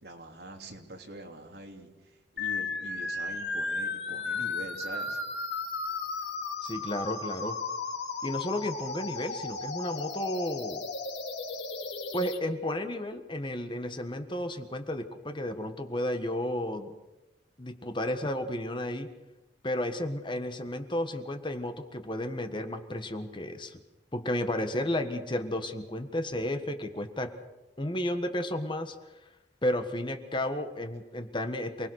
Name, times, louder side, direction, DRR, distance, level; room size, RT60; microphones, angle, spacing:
voice 1, 0.0-5.2, right 1 dB, 60° right, 3 dB, 3.1 m, -44 dB
sound 1, 2.4-12.4, left 4 dB, 75° left, 2.7 m, -35 dB
voice 2, 6.6-7.6 8.2-10.8 12.1-16.9 17.6-19.1 19.6-23.8 24.1-27.3 27.8-29.0 29.6-31.9, left 1 dB, 25° left, 7 dB, 1.5 m, -32 dB
28.5 x 19.5 x 6.5 m, 1.1 s
head